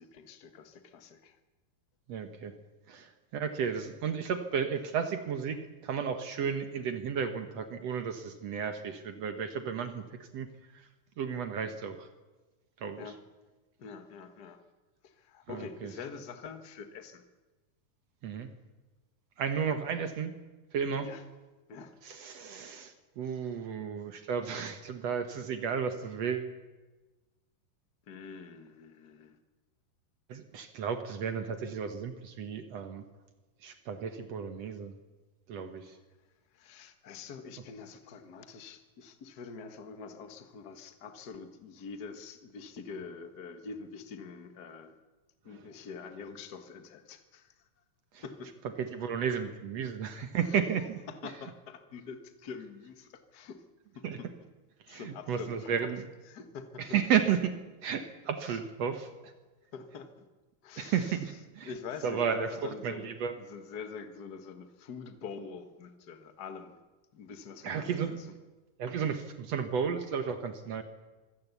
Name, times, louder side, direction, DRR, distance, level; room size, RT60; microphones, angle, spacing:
voice 1, 0.0-1.4 13.0-13.2 13.8-14.6 15.0-17.2 21.0-21.2 21.7-21.9 28.1-29.4 35.8-36.0 36.5-45.0 45.4-47.5 48.2-48.5 50.4-50.6 51.1-53.6 53.9-54.3 54.9-55.9 56.3-56.8 58.4-58.6 59.7-60.1 60.6-61.2 61.6-63.1 63.3-66.8 67.1-68.3, left 5 dB, 45° left, 8 dB, 1.4 m, -45 dB
voice 2, 2.1-2.6 2.9-10.0 10.3-10.5 10.7-10.9 11.2-12.1 12.8-13.1 15.5-15.9 18.2-18.5 19.4-20.3 20.7-21.1 22.0-26.5 30.3-33.0 33.6-34.9 35.5-36.0 45.5-45.6 48.1-48.2 48.8-51.0 54.0-54.2 54.9-56.1 56.8-57.5 57.8-59.3 60.8-61.7 62.0-63.3 67.6-68.3 68.8-70.8, right 7 dB, 60° right, 8 dB, 2.0 m, -33 dB
25.0 x 16.5 x 8.3 m, 1.2 s
omnidirectional pair, 4.0 m